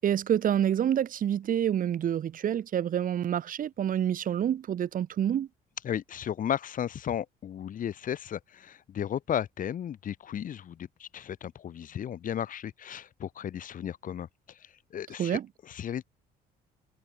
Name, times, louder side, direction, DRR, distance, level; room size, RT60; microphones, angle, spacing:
voice 1, 0.0-5.5 15.2-15.5, right 10 dB, 55° right, 7.3 m, -27 dB
voice 2, 5.8-14.6 14.9-16.0, left 9 dB, 50° left, 5.1 m, -34 dB
cardioid pair, 110°, 17 cm